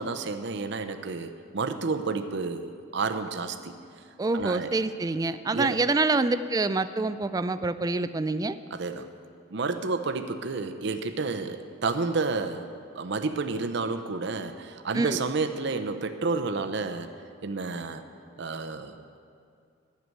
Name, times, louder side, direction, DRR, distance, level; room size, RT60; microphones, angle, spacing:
voice 1, 0.0-3.7 4.3-4.7 5.5-5.8 8.7-9.1 9.5-12.7 13.0-17.1 17.4-18.0 18.4-19.2, right 4 dB, 60° right, 8 dB, 0.7 m, -30 dB
voice 2, 4.2-8.6 14.9-15.2, right 3 dB, 20° right, 12 dB, 0.3 m, -26 dB
11.0 x 6.8 x 9.2 m, 2.4 s
head